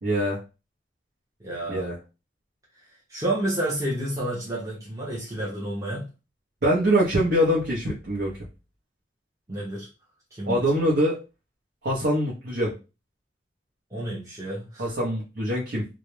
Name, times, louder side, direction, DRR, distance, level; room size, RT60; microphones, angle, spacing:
voice 1, 0.0-0.4 1.7-2.0 6.6-8.3 10.5-11.2 11.8-12.7 14.8-15.8, equal, 60° right, -5 dB, 0.7 m, -23 dB
voice 2, 1.4-1.9 3.1-6.1 9.5-9.9 10.3-10.7 13.9-14.9, right 1 dB, 20° right, -6 dB, 0.6 m, -30 dB
2.4 x 2.0 x 3.0 m, 0.29 s
head